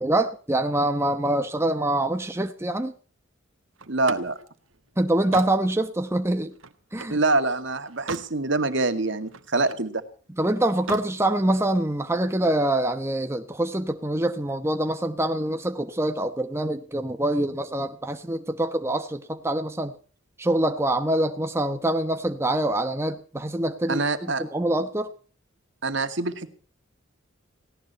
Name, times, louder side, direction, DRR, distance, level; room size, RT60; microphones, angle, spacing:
voice 1, 0.0-2.9 5.0-6.5 6.9-7.2 10.4-19.9 20.4-25.1, right 1 dB, 15° right, 1.0 m, -25 dB
Slam, 3.8-7.2 7.7-8.4 8.8-9.9 10.7-11.1, right 4 dB, 80° right, 1.5 m, -39 dB
voice 2, 3.9-4.4 7.1-10.0 23.9-24.4 25.8-26.5, right 3 dB, 65° right, 2.1 m, -25 dB
18.5 x 17.0 x 4.2 m
head